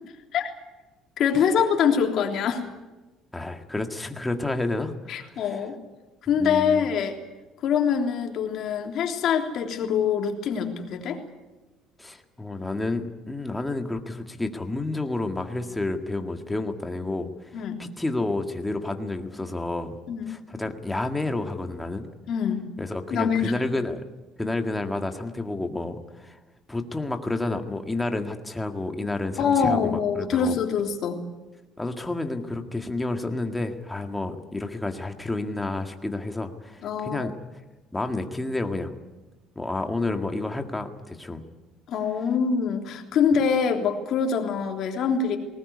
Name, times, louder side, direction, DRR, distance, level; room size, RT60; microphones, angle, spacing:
voice 1, 1.2-2.6 5.1-5.8 6.3-7.2 7.6-11.2 17.5-17.8 20.1-20.4 22.3-22.7 23.1-23.5 29.4-31.2 36.8-37.3 41.9-45.4, left 7 dB, 55° left, 3 dB, 3.4 m, -24 dB
voice 2, 3.3-5.7 6.4-6.9 12.0-17.3 17.8-20.0 20.3-22.1 22.8-24.0 24.4-26.4 26.7-30.6 31.8-37.4 37.9-39.0 39.6-41.4, left 2 dB, 10° left, 5 dB, 1.9 m, -30 dB
19.5 x 19.0 x 9.7 m, 1.1 s
cardioid pair, 135°, 0 cm